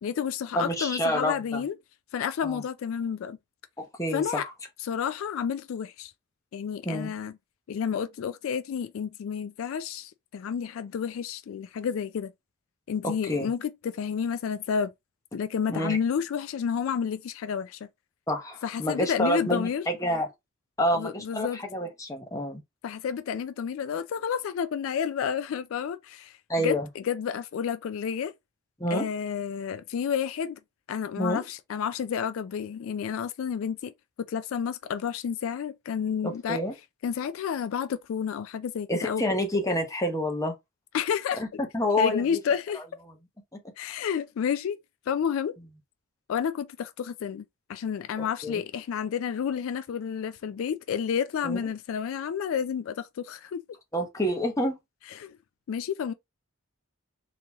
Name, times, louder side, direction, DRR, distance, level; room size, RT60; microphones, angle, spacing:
voice 1, 0.0-1.7 2.1-3.4 4.1-4.5 4.8-6.1 6.5-7.3 7.7-12.3 12.9-14.9 15.3-17.8 18.6-19.8 20.9-21.6 22.8-28.3 28.9-30.6 30.9-33.9 34.3-36.6 37.0-39.2 40.9-41.4 42.0-42.8 43.8-44.8 45.1-45.6 46.3-47.4 47.7-53.6 55.1-55.4 55.7-56.1, left 7 dB, 70° left, 0.3 m, -30 dB
voice 2, 0.5-1.6 2.4-2.6 3.8-4.5 6.8-7.1 13.0-13.5 15.7-16.0 18.3-20.3 20.8-22.6 26.5-26.9 28.8-29.1 31.2-31.4 36.2-36.7 38.9-40.5 41.4-41.5 41.7-42.2 42.7-42.8 48.4-48.6 51.4-51.6 53.9-54.8, equal, 15° left, 0.9 m, -28 dB
3.7 x 2.9 x 2.9 m
head